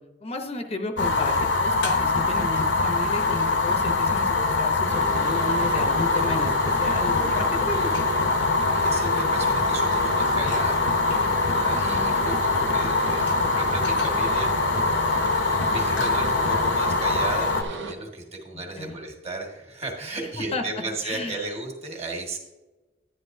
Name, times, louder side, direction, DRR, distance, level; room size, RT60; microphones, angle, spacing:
voice 1, 0.2-7.9 11.7-12.1 18.8-19.0 20.5-20.6 21.0-21.4, left 2 dB, 35° left, 5 dB, 0.7 m, -33 dB
Fire, 1.0-17.6, left 3 dB, 75° left, 0.8 m, -23 dB
sound 1, 4.9-17.9, right 3 dB, 80° right, 0.9 m, -34 dB
voice 2, 8.5-11.1 11.5-15.3 15.7-22.4, right 2 dB, 35° right, 1 dB, 1.6 m, -35 dB
11.0 x 9.7 x 2.6 m, 1.1 s
head